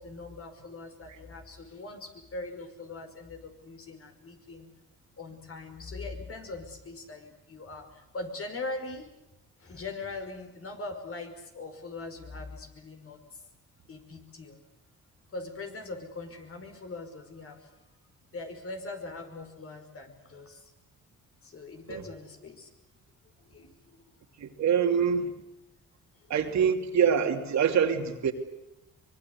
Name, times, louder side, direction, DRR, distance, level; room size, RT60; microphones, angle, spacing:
voice 1, 0.0-4.7 5.2-9.1 9.6-13.4 13.9-14.6 15.3-17.7 18.3-20.6 21.4-22.7 23.4-24.1, left 3 dB, 50° left, 5 dB, 5.4 m, -41 dB
voice 2, 24.4-25.3 26.3-28.3, right 7 dB, 65° right, 4 dB, 2.9 m, -25 dB
24.5 x 22.5 x 8.4 m, 0.92 s
cardioid pair, 90°, 30 cm